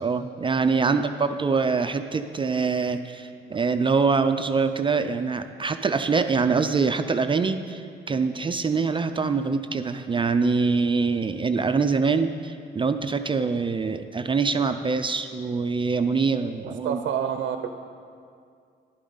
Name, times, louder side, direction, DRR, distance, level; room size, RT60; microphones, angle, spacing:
voice 1, 0.0-17.0, right 4 dB, 25° right, 8 dB, 0.4 m, -24 dB
voice 2, 16.6-17.7, right 8 dB, 70° right, 7 dB, 0.6 m, -29 dB
11.0 x 10.0 x 3.9 m, 2.3 s
cardioid pair, 90°, 20 cm